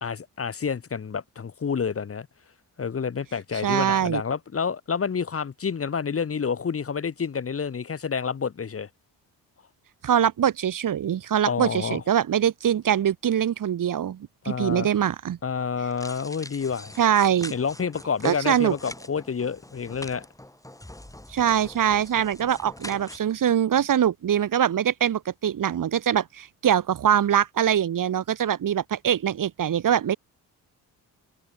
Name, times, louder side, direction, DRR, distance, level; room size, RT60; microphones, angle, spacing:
voice 1, 0.0-2.3 2.8-8.9 11.5-12.0 14.4-14.9 15.4-16.9 17.5-20.3, left 6 dB, 35° left, 1.0 m, -29 dB
voice 2, 3.6-4.2 10.0-15.4 17.0-17.5 18.2-18.7 21.3-30.2, right 9 dB, 50° right, 0.9 m, -23 dB
sound 1, 15.9-23.2, left 1 dB, 10° left, 2.2 m, -43 dB
supercardioid pair, 55°, 40 cm